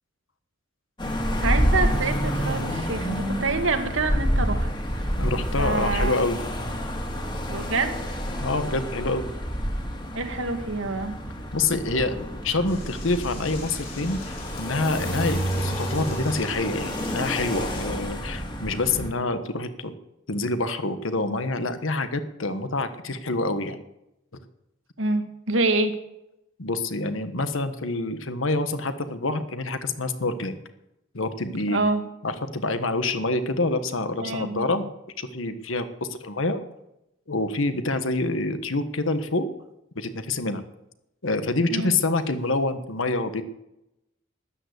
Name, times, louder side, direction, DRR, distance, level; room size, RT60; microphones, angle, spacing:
sound 1, 1.0-19.1, equal, 25° left, 2.2 m, -28 dB
voice 1, 1.4-4.7 5.6-6.3 7.5-8.2 10.1-11.1 25.0-25.9 31.7-32.0 34.2-34.7 41.7-41.9, right 3 dB, 80° right, 6 dB, 1.9 m, -26 dB
voice 2, 5.2-6.4 8.4-9.3 11.5-19.9 20.3-23.8 26.6-30.6 31.1-31.8 32.2-34.9 35.2-36.6 37.3-39.5 39.9-40.6 41.2-43.4, left 2 dB, 85° left, 10 dB, 1.4 m, -27 dB
Door / Toilet flush, 12.6-17.9, left 4 dB, 45° left, 4.7 m, -43 dB
13.5 x 11.0 x 8.1 m, 0.86 s
head